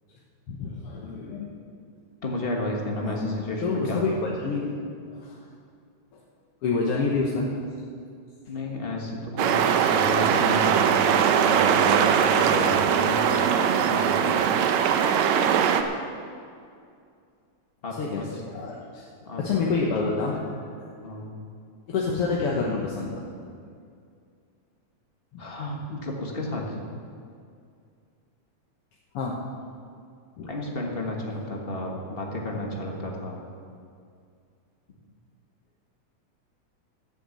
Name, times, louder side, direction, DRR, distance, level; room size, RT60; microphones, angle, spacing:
voice 1, 0.5-1.5 3.0-3.3 3.6-5.5 6.1-6.2 6.6-7.5 18.0-19.1 19.4-21.1 21.9-23.2 25.3-25.5 29.1-29.4 30.4-30.5, left 4 dB, 60° left, -3 dB, 1.9 m, -28 dB
voice 2, 2.2-4.2 8.5-13.5 13.9-14.5 17.8-18.3 19.2-19.6 21.0-21.3 25.4-26.8 30.4-33.4, left 1 dB, 30° left, 0 dB, 1.0 m, -32 dB
sound 1, 9.4-15.8, right 8 dB, 75° right, 2.0 m, -21 dB
14.5 x 6.9 x 8.4 m, 2.3 s
omnidirectional pair, 3.4 m